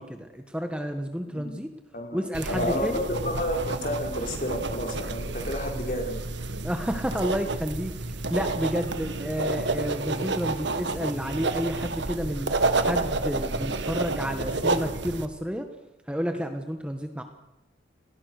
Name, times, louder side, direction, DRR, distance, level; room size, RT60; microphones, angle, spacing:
voice 1, 0.0-1.7 2.1-3.0 6.6-12.5 12.8-15.7 16.1-17.2, equal, 5° right, 6 dB, 1.3 m, -31 dB
sound 1, 2.3-15.2, right 3 dB, 75° right, 1.6 m, -30 dB
voice 2, 2.5-2.9 3.2-6.2, equal, 45° left, 2 dB, 5.4 m, -30 dB
29.5 x 20.0 x 6.6 m, 0.98 s
head